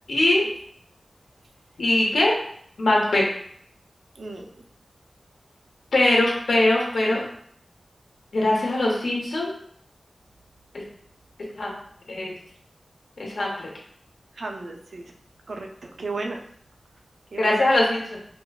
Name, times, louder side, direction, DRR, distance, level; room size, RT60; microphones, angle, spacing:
voice 1, 0.1-0.5 1.8-2.4 2.8-3.2 5.9-7.2 8.3-9.5 11.6-11.7 12.1-12.4 13.2-13.7 17.4-18.2, left 1 dB, 90° left, -2 dB, 0.9 m, -21 dB
voice 2, 4.2-4.5 14.3-15.0 15.5-16.4 17.3-17.7, right 3 dB, 75° right, 2 dB, 0.5 m, -34 dB
4.9 x 2.1 x 2.4 m, 0.63 s
wide cardioid pair, 105°, 0 cm